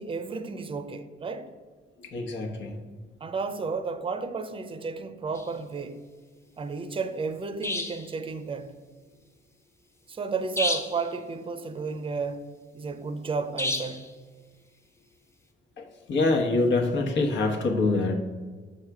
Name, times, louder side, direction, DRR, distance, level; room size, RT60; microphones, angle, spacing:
voice 1, 0.0-1.5 3.2-6.0 6.6-8.8 10.1-14.1, right 4 dB, 25° right, 0.6 m, -32 dB
voice 2, 2.1-2.7 16.1-18.2, left 3 dB, 65° left, 1.2 m, -24 dB
sound 1, 5.3-5.5 7.6-8.1 10.6-11.1 13.6-14.1, left 1 dB, 15° left, 0.8 m, -30 dB
7.0 x 4.8 x 4.7 m
cardioid pair, 90°, 20 cm